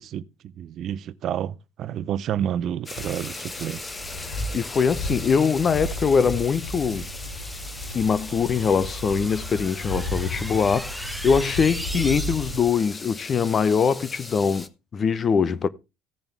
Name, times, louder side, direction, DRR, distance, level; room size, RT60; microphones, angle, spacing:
voice 1, 0.0-3.9, right 10 dB, 55° right, 0.6 m, -30 dB
sound 1, 2.9-14.7, left 3 dB, 20° left, 1.1 m, -39 dB
Wind, 3.0-12.7, equal, 80° left, 3.3 m, -34 dB
voice 2, 4.2-7.1 7.9-15.7, left 6 dB, 40° left, 0.8 m, -23 dB
sound 2, 6.9-12.8, equal, 5° right, 0.6 m, -39 dB
16.0 x 7.1 x 3.4 m
hypercardioid pair, 75°, 0 cm